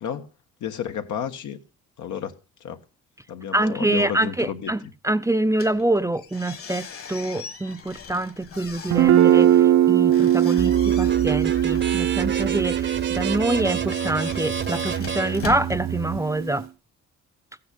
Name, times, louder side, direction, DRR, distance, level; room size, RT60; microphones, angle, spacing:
voice 1, 0.6-1.6 2.0-2.8 3.3-4.7, left 8 dB, 75° left, 1.5 m, -32 dB
voice 2, 3.5-4.8 5.0-16.7, right 1 dB, 10° right, 0.6 m, -25 dB
sound 1, 5.5-16.6, left 5 dB, 50° left, 1.9 m, -41 dB
Guitar, 8.9-16.6, right 12 dB, 65° right, 0.7 m, -21 dB
sound 2, 10.6-16.2, right 7 dB, 40° right, 0.9 m, -30 dB
15.0 x 9.6 x 5.3 m
cardioid pair, 90°, 30 cm